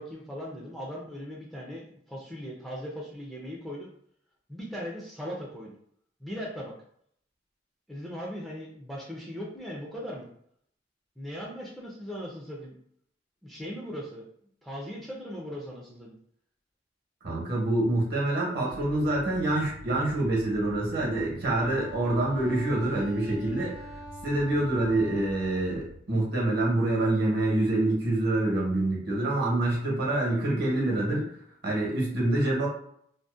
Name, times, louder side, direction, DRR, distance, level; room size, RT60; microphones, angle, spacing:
voice 1, 0.0-3.9 4.5-5.8 6.2-6.7 7.9-10.3 11.2-12.8 13.4-14.3 14.6-16.2, equal, ahead, -4 dB, 0.4 m, -39 dB
voice 2, 17.2-23.7 24.2-31.2 31.6-32.7, right 2 dB, 55° right, -3 dB, 0.9 m, -26 dB
sound 1, 18.7-26.0, right 3 dB, 85° right, 0.4 m, -46 dB
Wind instrument woodwind instrument, 21.4-25.7, left 4 dB, 70° left, 0.3 m, -45 dB
2.5 x 2.0 x 2.3 m, 0.67 s
head